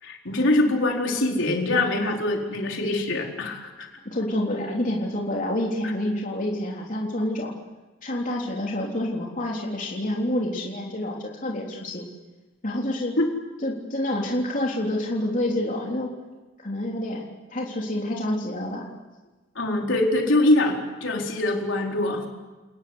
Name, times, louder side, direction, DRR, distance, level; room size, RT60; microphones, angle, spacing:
voice 1, 0.0-3.9 13.2-13.3 19.5-22.2, left 2 dB, 65° left, 1 dB, 4.4 m, -23 dB
voice 2, 4.1-7.5 8.0-12.1 12.6-13.2 13.6-16.1 16.6-18.9, left 1 dB, 40° left, -2 dB, 3.6 m, -28 dB
29.5 x 20.0 x 8.0 m, 1.2 s
head